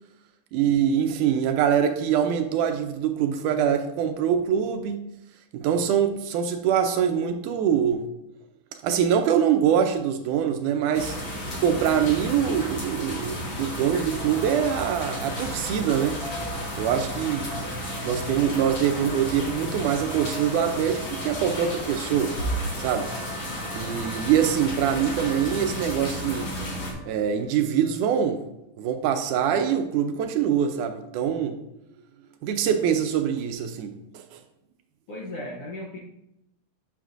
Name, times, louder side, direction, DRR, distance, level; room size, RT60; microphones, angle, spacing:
voice 1, 0.5-5.1 5.5-8.1 8.8-11.2 11.6-16.2 16.8-17.5 18.0-22.3 22.8-23.1 23.7-26.5 27.1-28.4 28.8-31.6 32.4-34.4, right 8 dB, 80° right, 6 dB, 2.0 m, -24 dB
sound 1, 10.9-26.9, equal, 50° left, 1.8 m, -33 dB
sound 2, 14.1-24.8, right 1 dB, 35° right, 0.7 m, -43 dB
Wind instrument woodwind instrument, 21.2-28.2, equal, 30° left, 1.2 m, -47 dB
voice 2, 35.1-36.0, left 1 dB, 70° left, -3 dB, 1.3 m, -36 dB
7.9 x 6.4 x 2.5 m, 0.84 s
omnidirectional pair, 3.8 m